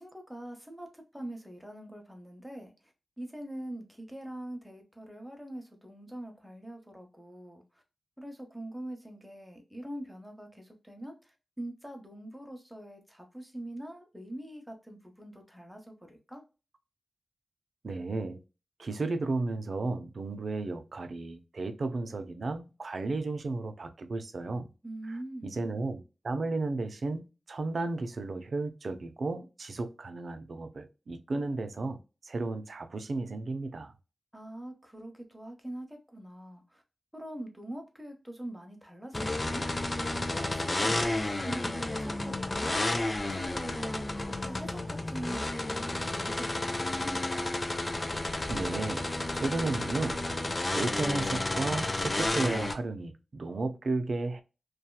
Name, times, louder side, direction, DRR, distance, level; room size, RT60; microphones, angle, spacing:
voice 1, 0.0-2.7 3.2-7.6 8.2-11.2 11.6-16.4 24.8-25.6 34.3-36.8 37.1-39.6 40.3-42.9 43.3-47.1, right 1 dB, 5° right, 0.8 m, -43 dB
voice 2, 17.8-18.4 18.8-24.7 25.1-33.9 48.5-49.1 49.3-54.4, right 3 dB, 65° right, 0.4 m, -34 dB
sound 1, 39.1-52.8, left 2 dB, 30° left, 0.4 m, -31 dB
2.8 x 2.3 x 2.2 m
wide cardioid pair, 90°, 0 cm